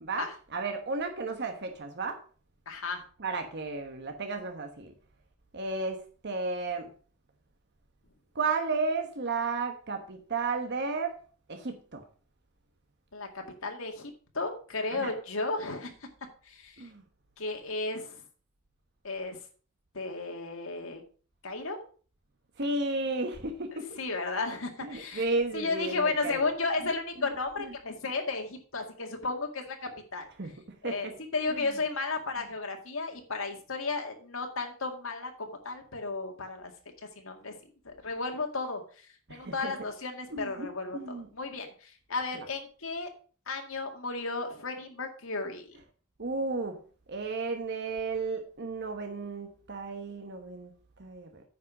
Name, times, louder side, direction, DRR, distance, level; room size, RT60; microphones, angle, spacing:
voice 1, 0.0-2.2 3.2-4.9 5.5-6.9 8.3-11.2 11.5-12.0 14.9-15.1 16.8-17.0 22.6-24.0 24.8-26.5 26.8-26.9 27.2-27.3 27.6-27.7 30.4-30.5 30.8-31.1 31.5-31.7 39.3-39.7 40.3-41.3 46.2-46.8 47.1-50.7 51.0-51.4, right 3 dB, 55° right, 1.2 m, -33 dB
voice 2, 2.7-3.0 13.1-13.3 13.6-15.9 16.5-16.9 17.4-18.2 19.0-19.4 19.9-21.0 21.4-21.8 24.0-30.3 30.8-36.7 37.2-37.6 37.9-38.8 39.3-43.1 43.5-45.8, left 3 dB, 80° left, 2.0 m, -34 dB
9.5 x 5.3 x 6.1 m
head